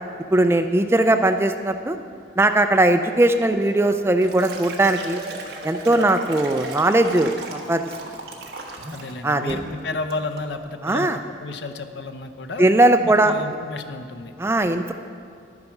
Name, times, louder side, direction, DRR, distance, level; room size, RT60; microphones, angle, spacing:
voice 1, 0.3-2.0 2.4-5.2 5.6-7.8 9.2-9.6 10.8-11.2 12.6-13.3 14.4-14.9, right 1 dB, 15° right, 7 dB, 0.3 m, -19 dB
Liquid, 3.6-9.2 9.5-9.7 10.1-10.5, right 1 dB, 55° right, 1.4 m, -35 dB
voice 2, 8.9-12.7 13.0-14.3, left 3 dB, 65° left, 7 dB, 0.7 m, -32 dB
11.0 x 9.6 x 5.8 m, 2.3 s
head